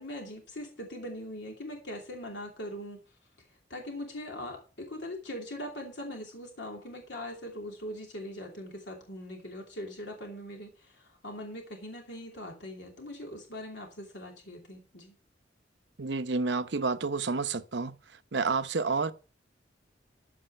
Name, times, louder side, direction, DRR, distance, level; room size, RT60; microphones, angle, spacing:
voice 1, 0.0-3.0 3.4-15.1, left 1 dB, 75° left, 2.8 m, -41 dB
voice 2, 16.0-17.9 18.3-19.1, right 4 dB, 70° right, 0.8 m, -29 dB
14.0 x 5.5 x 6.6 m
head